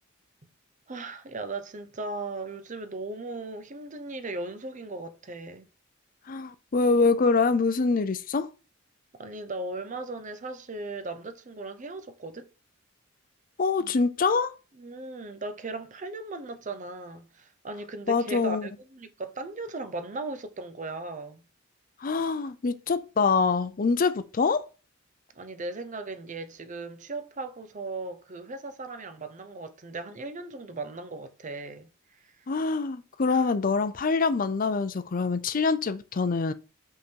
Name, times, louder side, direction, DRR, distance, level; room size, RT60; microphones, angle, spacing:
voice 1, 0.9-5.7 9.2-12.5 13.8-13.9 14.8-21.4 25.3-31.9 32.2-32.4 33.3-33.5, right 3 dB, 40° right, 0.7 m, -37 dB
voice 2, 6.3-8.5 13.6-14.5 18.1-18.7 22.0-24.7 32.5-36.5, left 4 dB, 45° left, 0.5 m, -25 dB
5.7 x 3.8 x 4.5 m
head